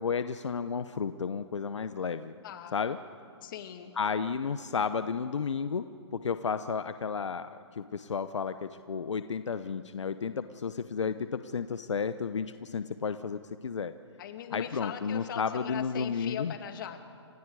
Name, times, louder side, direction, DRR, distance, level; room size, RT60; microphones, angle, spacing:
voice 1, 0.0-2.4 2.7-3.0 4.0-5.8 6.1-13.9 14.5-16.5, left 6 dB, 80° left, 11 dB, 0.9 m, -32 dB
voice 2, 2.4-2.7 3.4-3.9 14.2-17.0, left 9 dB, 45° left, 6 dB, 2.2 m, -40 dB
29.5 x 26.5 x 4.8 m, 2.3 s
hypercardioid pair, 145°, 15 cm